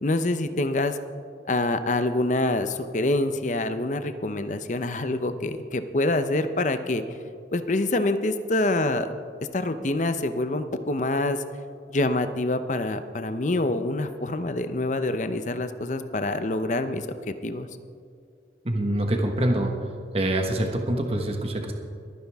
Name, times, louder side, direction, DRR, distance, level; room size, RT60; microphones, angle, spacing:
voice 1, 0.0-1.0 1.5-7.0 7.5-9.1 9.5-11.4 11.9-17.2 17.4-17.7, left 2 dB, 45° left, 10 dB, 0.7 m, -26 dB
voice 2, 18.6-19.7 20.1-21.7, right 1 dB, 35° right, 3 dB, 1.3 m, -25 dB
22.0 x 9.7 x 3.6 m, 2.3 s
head